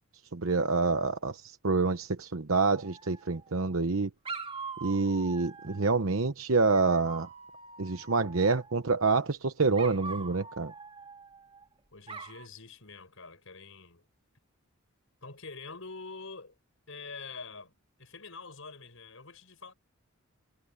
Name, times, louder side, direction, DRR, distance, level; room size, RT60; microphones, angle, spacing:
voice 1, 0.3-4.1 4.8-7.3 7.8-10.7, right 4 dB, 70° right, 1.0 m, -27 dB
Dog, 2.7-3.6 4.2-5.9 6.7-8.8 9.7-11.6 12.1-12.5, right 4 dB, 25° right, 2.1 m, -43 dB
voice 2, 11.9-14.0 15.2-16.6 16.9-17.7 18.0-19.7, left 4 dB, 70° left, 7.1 m, -45 dB
head